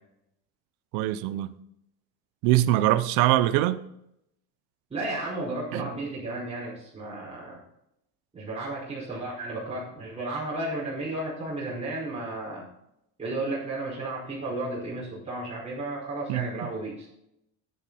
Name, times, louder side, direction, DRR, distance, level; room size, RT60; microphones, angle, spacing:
voice 1, 0.9-1.5 2.4-3.8 5.7-5.9 16.3-16.5, right 14 dB, 75° right, 0.8 m, -23 dB
voice 2, 4.9-7.6 8.3-12.6 13.2-17.1, right 2 dB, 15° right, 5.1 m, -33 dB
12.0 x 9.7 x 4.2 m
cardioid pair, 120°, 37 cm